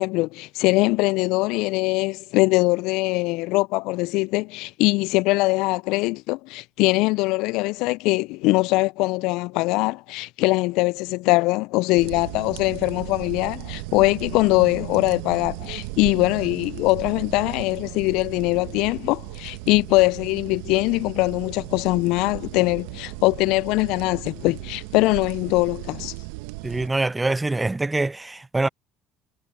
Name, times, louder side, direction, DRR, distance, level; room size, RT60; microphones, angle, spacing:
voice 1, 0.0-26.1, left 23 dB, 70° left, 0.3 m, -22 dB
sound 1, 12.0-26.9, right 22 dB, 75° right, 1.0 m, -36 dB
voice 2, 26.6-28.7, right 2 dB, 15° right, 0.5 m, -24 dB
hypercardioid pair, 65°, 0 cm